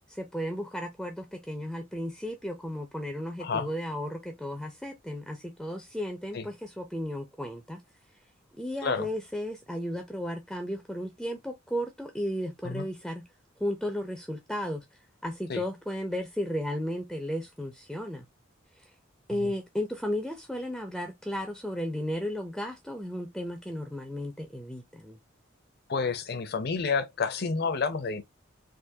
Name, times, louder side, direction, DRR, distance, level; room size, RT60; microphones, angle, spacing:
voice 1, 0.1-7.8 8.6-13.2 13.6-14.9 15.2-18.2 18.8-18.9 19.3-25.2, equal, ahead, 0.4 m, -34 dB
voice 2, 25.9-28.2, left 4 dB, 50° left, 0.6 m, -29 dB
3.6 x 2.5 x 2.6 m
head